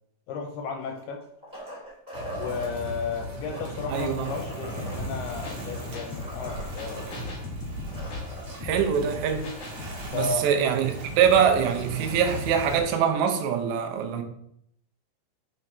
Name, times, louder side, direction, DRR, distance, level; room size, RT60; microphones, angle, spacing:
voice 1, 0.3-1.2 2.3-7.2 10.1-10.5, left 5 dB, 80° left, 3 dB, 2.5 m, -33 dB
sound 1, 0.8-2.7 3.3-7.1 7.4-7.5 7.7-8.5 10.0-10.1, right 1 dB, 25° right, 1.5 m, -41 dB
sound 2, 2.1-12.8, equal, 55° right, 1.8 m, -37 dB
voice 2, 3.9-4.3 8.6-9.5 10.1-14.2, right 7 dB, 85° right, 5 dB, 3.0 m, -23 dB
sound 3, 4.8-10.1, left 2 dB, 60° left, 1.8 m, -40 dB
6.2 x 5.8 x 3.2 m, 0.73 s
omnidirectional pair, 5.0 m